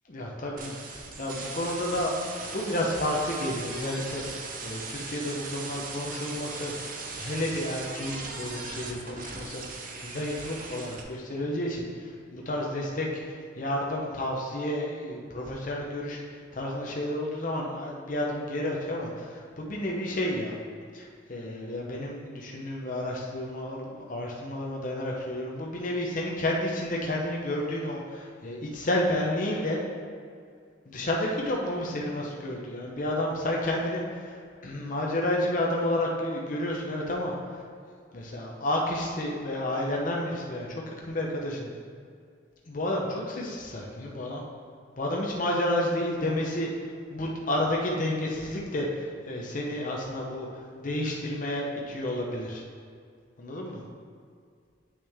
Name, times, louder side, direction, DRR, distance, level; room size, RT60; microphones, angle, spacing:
voice 1, 0.1-6.7 7.2-9.6 10.0-13.2 13.6-16.2 16.5-20.6 20.9-29.8 30.9-37.4 38.1-41.7 42.7-44.4 45.0-46.7 47.1-50.5 50.8-52.6 53.4-53.8, left 1 dB, 45° left, -2 dB, 0.9 m, -31 dB
sound 1, 0.6-11.0, right 4 dB, 45° right, 0.8 m, -39 dB
8.2 x 6.0 x 3.6 m, 2.2 s
head